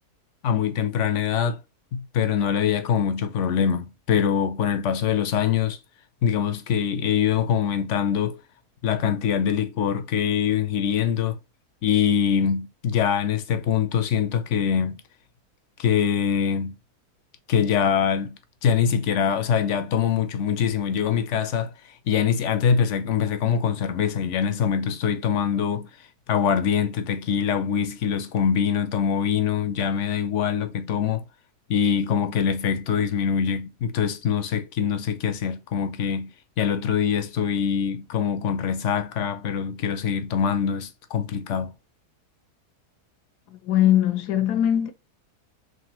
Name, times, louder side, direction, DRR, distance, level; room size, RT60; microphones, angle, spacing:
voice 1, 0.4-1.6 1.9-5.8 6.2-8.4 8.8-11.4 11.8-15.0 15.8-16.7 17.5-21.7 22.1-25.9 26.3-31.2 31.7-36.3 36.6-41.7, left 7 dB, 60° left, 0.8 m, -24 dB
voice 2, 43.5-44.9, left 11 dB, 80° left, 1.3 m, -21 dB
3.9 x 3.3 x 3.0 m
omnidirectional pair, 1.7 m